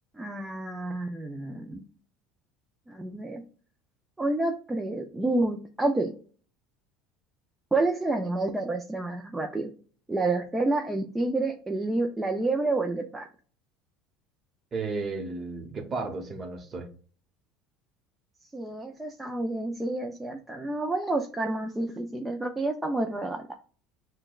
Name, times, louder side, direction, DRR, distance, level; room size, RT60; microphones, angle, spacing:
voice 1, 0.2-1.8 2.9-3.4 4.2-6.1 7.7-9.7 10.1-13.3 18.5-23.5, right 2 dB, 10° right, 2 dB, 0.4 m, -29 dB
voice 2, 14.7-16.9, right 3 dB, 30° right, 5 dB, 0.9 m, -33 dB
6.0 x 2.2 x 2.3 m, 0.40 s
supercardioid pair, 125°, 0 cm